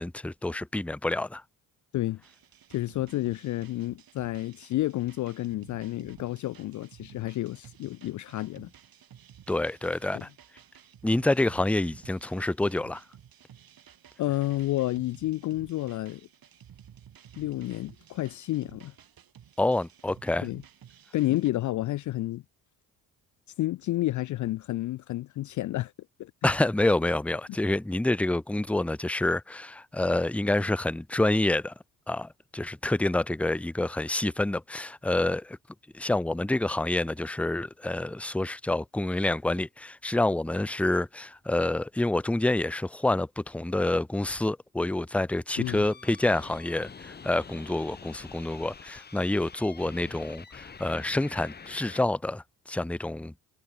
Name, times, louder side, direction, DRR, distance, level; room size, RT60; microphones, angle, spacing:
voice 1, 0.0-1.4 9.5-10.3 11.0-13.0 19.6-20.5 26.4-31.7 32.1-35.6 35.9-53.3, left 2 dB, 5° left, 0.7 m, -27 dB
sound 1, 2.2-21.5, right 9 dB, 55° right, 7.7 m, -54 dB
voice 2, 2.7-8.7 10.1-10.2 14.2-16.2 17.4-18.9 20.4-20.6 21.1-22.4 23.6-25.9 26.2-26.3 45.6-45.8, left 16 dB, 45° left, 0.5 m, -30 dB
sound 2, 45.6-52.0, left 5 dB, 25° left, 1.0 m, -46 dB
hypercardioid pair, 60°, 42 cm